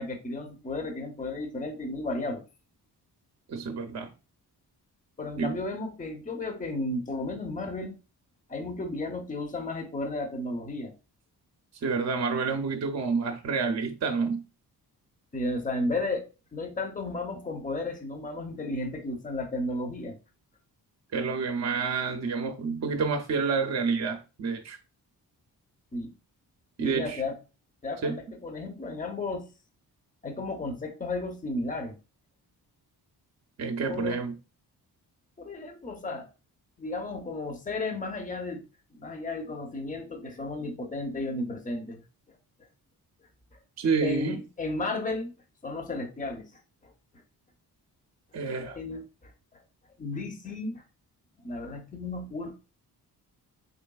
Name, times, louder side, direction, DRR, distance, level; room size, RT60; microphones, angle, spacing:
voice 1, 0.0-2.4 5.2-7.9 8.5-10.9 15.3-16.2 16.5-20.2 25.9-26.1 26.8-27.4 27.8-29.5 30.2-31.9 33.8-34.2 35.4-36.3 36.8-38.6 38.9-42.0 43.5-43.6 44.0-45.3 45.6-46.5 46.8-46.9 48.7-49.3 50.0-50.8 51.4-52.5, left 2 dB, 20° left, 0.7 m, -33 dB
voice 2, 3.5-4.1 5.4-5.6 11.8-14.4 21.1-24.8 26.8-27.2 28.0-28.2 33.6-34.4 43.8-44.4 48.3-48.8, right 5 dB, 40° right, 0.6 m, -29 dB
3.9 x 3.2 x 2.3 m
cardioid pair, 75°, 40 cm